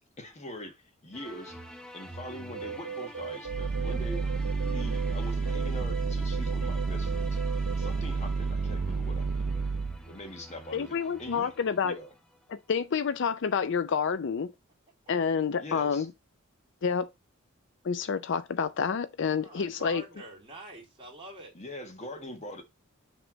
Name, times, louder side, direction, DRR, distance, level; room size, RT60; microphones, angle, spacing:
voice 1, 0.2-1.6 1.9-4.3 4.6-7.4 7.8-9.5 10.1-11.5 11.8-12.1 15.6-16.1 21.5-22.6, left 1 dB, 30° left, 1.4 m, -43 dB
sound 1, 1.1-12.5, equal, 5° left, 0.9 m, -47 dB
sound 2, 2.5-5.1 5.4-7.9, right 7 dB, 80° right, 1.3 m, -38 dB
sound 3, 3.5-10.0, right 4 dB, 50° right, 0.5 m, -30 dB
voice 2, 10.7-12.0 12.5-14.5 15.1-16.1 16.8-17.1 17.8-20.0, left 6 dB, 55° left, 0.4 m, -28 dB
voice 3, 19.4-21.5, right 2 dB, 25° right, 2.6 m, -45 dB
6.0 x 3.4 x 5.0 m
head